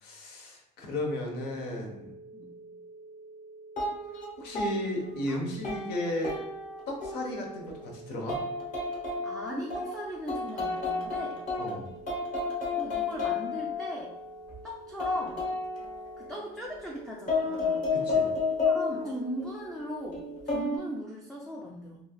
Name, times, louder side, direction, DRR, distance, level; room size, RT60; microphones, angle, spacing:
voice 1, 0.0-2.1 4.4-6.3 6.9-8.4 11.6-11.9 17.9-18.3, left 1 dB, 75° left, 0 dB, 0.8 m, -34 dB
sound 1, 1.2-20.5, right 3 dB, 70° right, 0.4 m, -49 dB
sound 2, 3.8-4.3 4.5-5.2 5.6-7.8 8.3-9.9 10.3-11.7 12.1-14.6 15.0-16.7 17.3-19.5 20.1-20.8, left 3 dB, 45° left, 1.0 m, -31 dB
voice 2, 5.0-5.5 9.2-11.4 12.7-14.1 14.6-15.5 16.2-17.9 18.6-22.0, equal, 5° left, -4 dB, 0.4 m, -39 dB
3.1 x 2.4 x 2.3 m, 0.85 s
cardioid pair, 110°, 17 cm